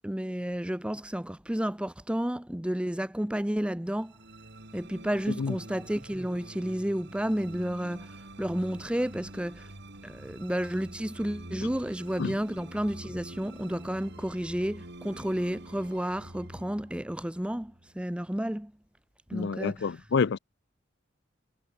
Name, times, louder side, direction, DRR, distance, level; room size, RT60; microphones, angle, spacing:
voice 1, 0.0-4.1 4.7-9.7 10.0-18.7 19.3-20.0, equal, 5° right, 0.7 m, -31 dB
sound 1, 3.9-18.3, right 1 dB, 65° right, 4.7 m, -47 dB
voice 2, 19.3-20.4, left 5 dB, 60° left, 0.5 m, -28 dB
head